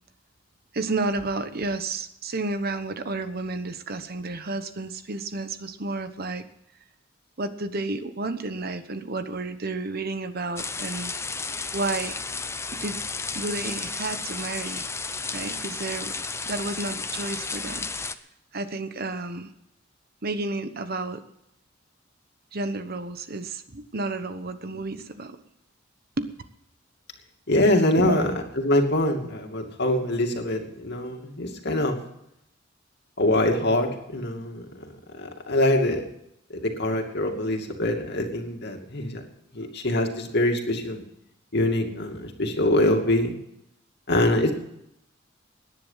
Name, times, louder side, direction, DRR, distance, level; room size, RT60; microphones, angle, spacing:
voice 1, 0.7-6.4 7.4-11.1 11.7-12.2 12.7-13.0 13.3-14.9 15.3-16.2 16.4-18.1 18.5-19.5 20.2-21.2 22.5-25.4 26.2-26.3 27.9-28.2, right 2 dB, 50° right, 11 dB, 1.1 m, -31 dB
sound 1, 10.6-18.1, left 4 dB, 15° left, 0.7 m, -33 dB
voice 2, 27.5-32.0 33.2-34.9 35.2-36.0 36.5-39.2 39.5-41.0 41.5-43.3 44.1-44.5, left 1 dB, 55° left, 3 dB, 2.5 m, -24 dB
18.0 x 10.5 x 5.7 m, 0.81 s
head